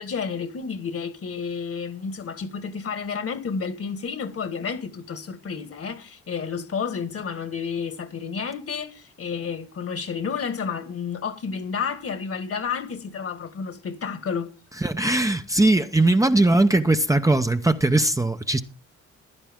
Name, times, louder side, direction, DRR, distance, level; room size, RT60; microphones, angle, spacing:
voice 1, 0.0-14.5, left 6 dB, 50° left, 1.7 m, -31 dB
voice 2, 14.8-18.6, right 2 dB, 10° right, 0.8 m, -20 dB
15.0 x 11.0 x 3.6 m
cardioid pair, 90°, 30 cm